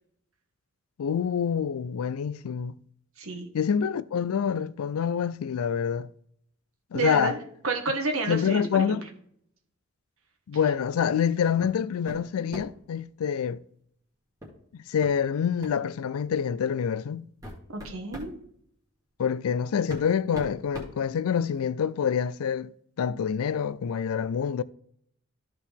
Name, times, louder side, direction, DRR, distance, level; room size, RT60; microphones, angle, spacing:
voice 1, 1.0-2.7 3.5-6.1 6.9-7.4 8.3-9.0 10.5-13.6 14.7-17.3 19.2-22.7 23.0-24.6, left 7 dB, 80° left, 0.4 m, -26 dB
voice 2, 6.9-7.4 7.6-9.0 17.7-18.3, right 3 dB, 75° right, 1.5 m, -30 dB
sound 1, 11.6-11.8 12.1-12.9 14.4-14.6 15.0-15.1 15.6-15.8 16.6-16.7 17.2-18.4 19.4-19.5 19.9-21.6, equal, 15° right, 1.8 m, -41 dB
13.5 x 4.5 x 3.5 m
head